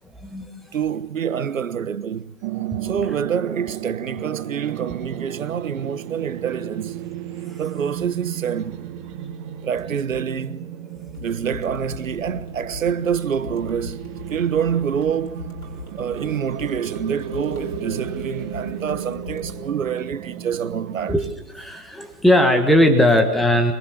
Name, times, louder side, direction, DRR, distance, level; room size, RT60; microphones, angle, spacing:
voice 1, 0.1-0.7 2.7-2.8 7.5-7.6 21.1-21.3 21.5-23.7, left 1 dB, ahead, 1.6 m, -19 dB
voice 2, 0.7-2.3 2.8-7.0 7.6-8.8 9.6-10.7 11.2-15.5 15.9-21.1, right 7 dB, 60° right, 1.4 m, -26 dB
sound 1, 2.4-21.2, right 11 dB, 20° right, 1.4 m, -34 dB
sound 2, 11.1-19.6, left 4 dB, 80° left, 6.6 m, -39 dB
25.5 x 19.5 x 6.6 m
figure-of-eight pair, 140°, 45 cm